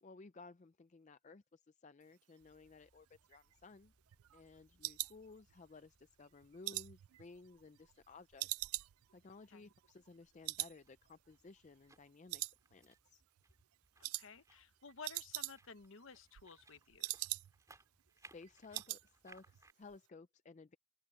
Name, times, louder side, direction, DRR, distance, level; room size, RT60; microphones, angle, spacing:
voice 1, 0.0-3.9 4.3-8.7 9.1-12.4 12.7-13.2 18.2-20.8, left 3 dB, 35° left, 0.4 m, -57 dB
sound 1, 2.4-12.1, equal, 60° right, 6.8 m, -78 dB
sound 2, 3.1-5.9 6.2-8.0 8.4-10.2 10.4-10.8 11.1-11.2 11.6-12.0 12.3-13.1 13.4-13.6 14.0-14.3 14.6-14.7 14.9-15.9 16.2-17.8 18.1-18.2 18.4-19.1 19.3-19.6 19.9-20.0, right 20 dB, 85° right, 0.3 m, -43 dB
sound 3, 10.5-19.7, right 3 dB, 15° right, 4.3 m, -66 dB
voice 2, 14.1-17.2, left 5 dB, 65° left, 1.0 m, -54 dB
open air
head